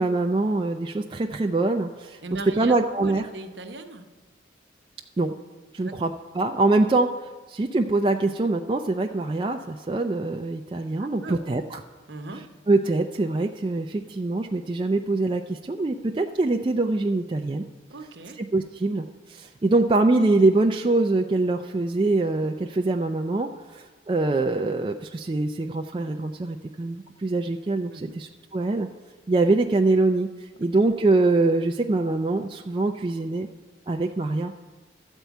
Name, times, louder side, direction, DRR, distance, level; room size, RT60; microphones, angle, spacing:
voice 1, 0.0-2.2 2.6-3.3 5.2-5.3 5.7-7.1 7.5-11.8 12.7-17.6 18.4-19.1 19.3-23.8 24.1-28.9 29.3-30.3 30.6-33.5 33.9-34.5, right 2 dB, 25° right, 3 dB, 0.3 m, -24 dB
voice 2, 2.2-4.0 5.8-5.9 11.0-11.4 12.1-12.4 17.9-18.4 27.9-28.2, right 2 dB, 60° right, 6 dB, 0.9 m, -38 dB
12.5 x 4.5 x 8.2 m, 1.3 s
head